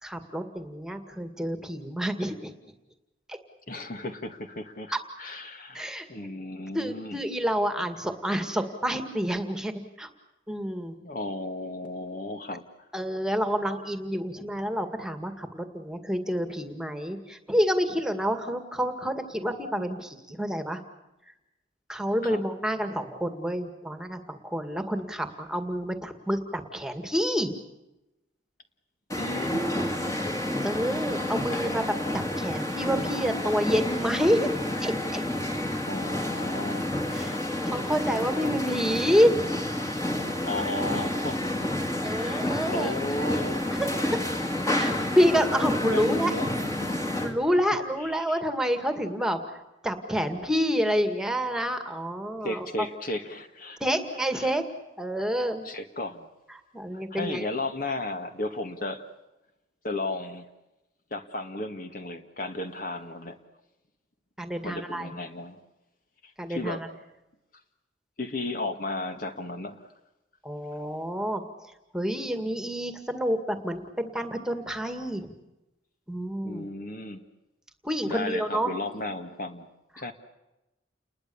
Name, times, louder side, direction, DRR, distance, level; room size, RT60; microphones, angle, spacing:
voice 1, 0.0-2.5 3.3-3.4 5.7-6.1 6.7-10.1 10.5-11.0 12.9-20.8 21.9-27.5 30.6-34.5 34.8-35.2 37.1-37.4 37.6-39.3 42.0-42.9 43.3-43.4 43.7-44.2 44.7-46.3 46.9-52.9 53.8-54.7 55.0-55.7 56.5-57.5 64.4-65.1 66.4-66.9 70.4-75.3 76.1-76.7 77.8-78.7, equal, 5° right, 7 dB, 2.0 m, -28 dB
voice 2, 3.7-7.2 11.0-12.6 22.2-22.4 29.2-29.6 31.3-31.9 35.9-36.9 40.4-43.6 44.7-44.8 45.9-46.5 48.2-48.4 52.4-53.8 54.3-54.5 55.6-56.3 56.9-59.1 59.8-60.5 61.1-63.4 64.6-65.6 66.2-66.8 68.2-69.9 76.4-77.2 78.1-79.7 80.0-80.1, left 2 dB, 45° left, 7 dB, 1.8 m, -34 dB
sound 1, 29.1-47.3, left 1 dB, 15° left, 2.3 m, -29 dB
30.0 x 21.5 x 7.1 m, 0.96 s
head